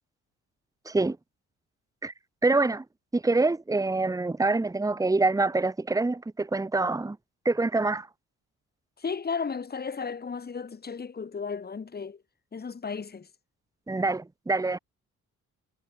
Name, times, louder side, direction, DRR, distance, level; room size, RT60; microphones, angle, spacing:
voice 1, 2.4-2.8 3.1-7.2 7.4-8.1 13.9-14.8, right 3 dB, 10° right, 1.2 m, -25 dB
voice 2, 9.0-12.2 12.5-13.3, left 5 dB, 30° left, 2.5 m, -34 dB
cardioid pair, 90°, 30 cm